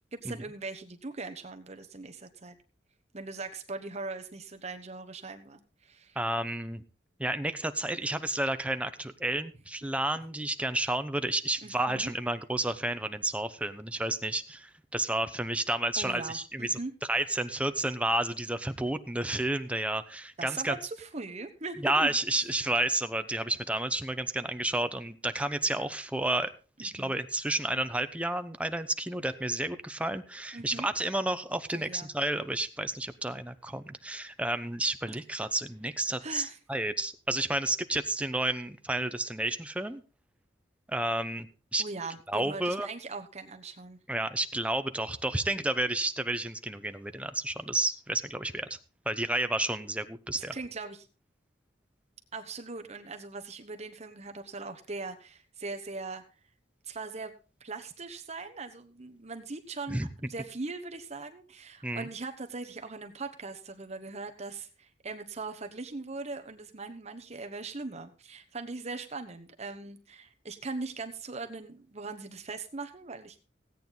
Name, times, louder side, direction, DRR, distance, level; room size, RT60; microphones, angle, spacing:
voice 1, 0.1-2.6 3.1-6.2 11.6-12.1 16.0-16.9 20.4-22.2 26.8-27.2 30.5-30.9 31.7-32.1 36.2-36.6 41.8-44.0 50.3-51.1 52.3-56.2 56.8-57.3 57.6-73.4, right 3 dB, 40° right, 6 dB, 1.1 m, -40 dB
voice 2, 6.2-6.8 7.2-16.8 17.1-20.7 21.8-26.5 26.8-40.0 40.9-41.8 42.3-42.9 44.1-48.8 49.1-50.5 59.9-60.1 61.8-62.1, right 1 dB, 5° right, 9 dB, 0.8 m, -31 dB
16.5 x 9.1 x 3.9 m, 0.34 s
head